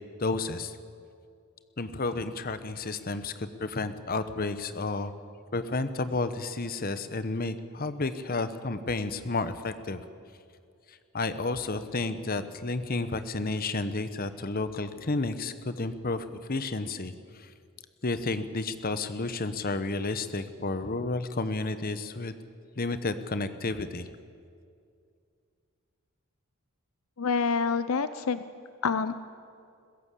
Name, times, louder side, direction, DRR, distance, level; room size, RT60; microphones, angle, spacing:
voice 1, 0.2-0.8 1.8-5.1 5.5-10.0 11.1-17.5 18.0-22.3 22.8-24.1, left 3 dB, 40° left, 12 dB, 1.0 m, -31 dB
voice 2, 27.2-28.4 28.8-29.1, left 5 dB, 70° left, 13 dB, 0.6 m, -27 dB
21.5 x 16.0 x 8.3 m, 2.3 s
head